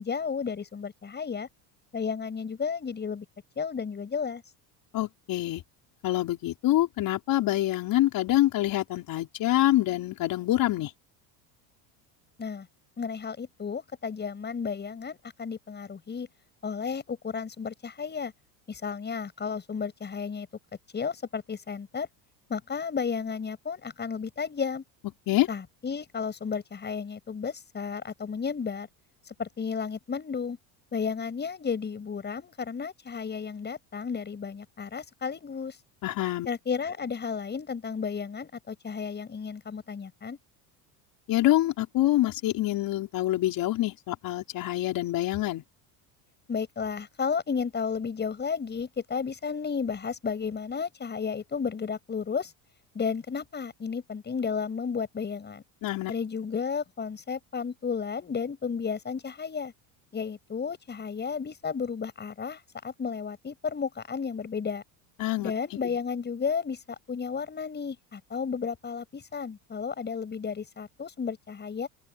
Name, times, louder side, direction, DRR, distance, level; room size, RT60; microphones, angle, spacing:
voice 1, 0.0-1.5 1.9-3.3 3.6-4.4 12.4-12.7 13.0-16.3 16.6-18.3 18.7-20.5 20.9-22.1 22.5-24.8 25.5-28.9 29.3-30.6 30.9-35.8 36.5-40.4 46.5-52.5 52.9-55.6 56.1-59.7 60.1-64.8 65.4-66.8 67.1-71.9, left 6 dB, 25° left, 6.9 m, -33 dB
voice 2, 4.9-5.6 6.0-10.9 25.3-25.5 36.0-36.5 41.3-45.6 55.8-56.1 65.2-65.5 65.8-66.0, left 15 dB, 50° left, 5.3 m, -26 dB
open air
supercardioid pair, 125°, 42 cm